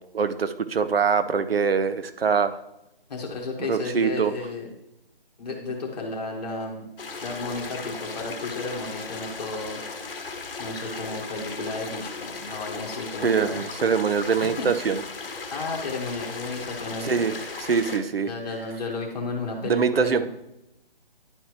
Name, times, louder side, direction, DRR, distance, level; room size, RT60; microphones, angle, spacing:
voice 1, 0.1-2.6 3.7-4.3 13.2-15.0 17.0-18.3 19.6-20.2, right 6 dB, 75° right, 11 dB, 0.7 m, -23 dB
voice 2, 3.1-4.7 5.4-6.9 7.2-9.8 10.6-13.6 14.4-14.7 15.5-17.2 18.2-20.2, left 3 dB, 45° left, 0 dB, 1.8 m, -33 dB
sound 1, 7.0-18.0, left 4 dB, 65° left, 1.2 m, -36 dB
11.0 x 4.3 x 3.2 m, 0.87 s
hypercardioid pair, 165°, 30 cm